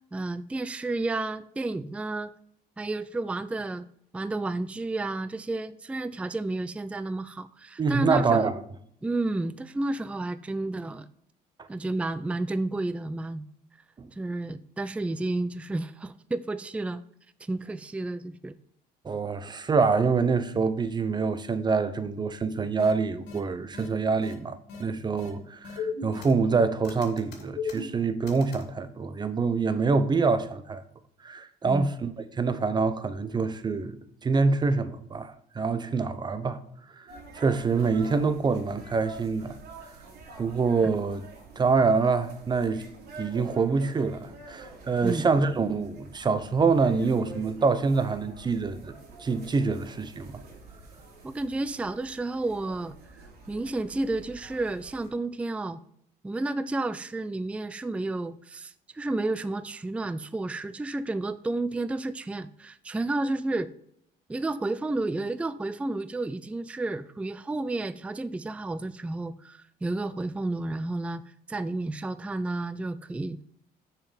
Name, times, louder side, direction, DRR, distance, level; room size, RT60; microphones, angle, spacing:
voice 1, 0.1-2.3 2.8-3.8 4.1-8.5 9.0-11.1 11.7-13.4 14.1-17.0 17.4-18.5 31.6-31.9 45.0-45.2 51.2-55.8 56.2-63.7 64.3-71.2 71.5-73.4, right 2 dB, 5° right, 0.4 m, -31 dB
voice 2, 7.8-8.6 11.6-11.7 14.0-14.1 19.0-30.8 31.2-36.6 36.9-39.5 39.8-40.0 40.4-41.2 41.6-42.9 43.2-48.9 49.2-50.4, right 4 dB, 25° right, 0.8 m, -26 dB
sound 1, 22.8-22.9 23.3-23.4 23.7-23.9 24.2-24.3 24.7-24.8 25.2-25.3 25.6-26.5 26.8-28.6, left 5 dB, 75° left, 2.4 m, -36 dB
sound 2, 37.1-55.1, right 3 dB, 70° right, 3.3 m, -47 dB
7.2 x 5.8 x 5.2 m
cardioid pair, 110°, 17 cm